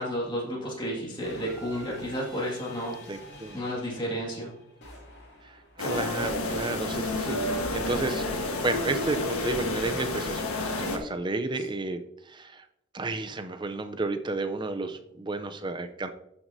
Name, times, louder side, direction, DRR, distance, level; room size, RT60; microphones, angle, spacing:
voice 1, 0.0-3.0 3.5-4.5, equal, 20° left, -4 dB, 2.0 m, -32 dB
sound 1, 1.2-6.3 7.2-8.6, left 1 dB, 55° left, 2.4 m, -47 dB
voice 2, 3.1-3.6 5.4-12.6 12.9-16.1, right 3 dB, 20° right, 8 dB, 0.5 m, -32 dB
sound 2, 5.8-11.0, left 2 dB, 85° left, 1.4 m, -30 dB
13.5 x 6.0 x 2.7 m, 0.80 s
head